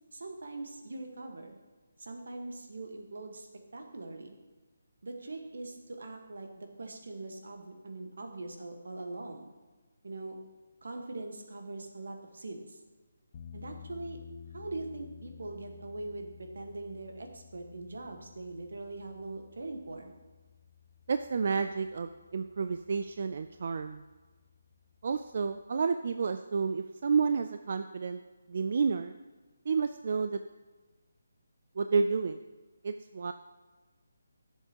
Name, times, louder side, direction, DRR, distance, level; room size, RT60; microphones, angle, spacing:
voice 1, 0.1-1.6 2.0-3.5 3.7-4.3 5.0-9.4 10.0-10.4 10.8-12.8 13.5-14.2 14.5-20.1, right 2 dB, 75° right, 4 dB, 1.4 m, -42 dB
sound 1, 13.3-25.7, left 8 dB, 25° left, 0.5 m, -54 dB
voice 2, 21.1-24.0 25.0-28.2 28.5-29.1 29.7-30.4 31.8-32.4 32.8-33.3, right 5 dB, 45° right, 9 dB, 0.3 m, -30 dB
11.5 x 7.2 x 2.9 m, 1.3 s
hypercardioid pair, 170°, 0 cm